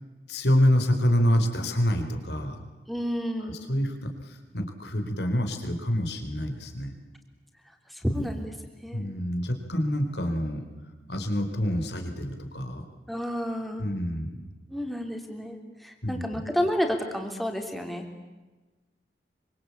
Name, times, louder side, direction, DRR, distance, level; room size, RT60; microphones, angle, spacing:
voice 1, 0.3-2.6 3.4-6.9 8.9-10.6 11.1-12.8 13.8-14.4 16.0-16.4, equal, 75° left, 6 dB, 4.3 m, -27 dB
voice 2, 2.9-3.5 7.9-8.5 8.8-9.1 13.1-13.8 14.7-18.0, equal, ahead, 3 dB, 3.3 m, -30 dB
26.0 x 25.0 x 8.6 m, 1.2 s
head